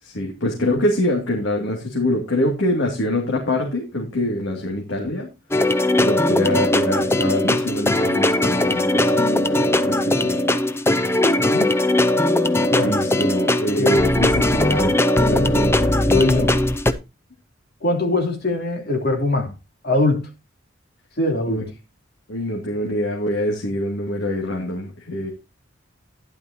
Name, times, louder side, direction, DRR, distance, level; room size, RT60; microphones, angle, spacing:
voice 1, 0.0-5.3 6.0-10.5 12.8-15.9 21.4-21.6 22.3-25.3, left 1 dB, 75° left, 2.6 m, -24 dB
sound 1, 5.5-16.9, left 1 dB, 15° left, 0.7 m, -19 dB
voice 2, 11.4-11.7 12.7-12.9 13.8-14.0 15.4-15.5 16.0-16.6 17.8-19.5 19.8-20.3 21.2-21.6, left 2 dB, 55° left, 3.1 m, -22 dB
12.0 x 11.0 x 2.9 m
head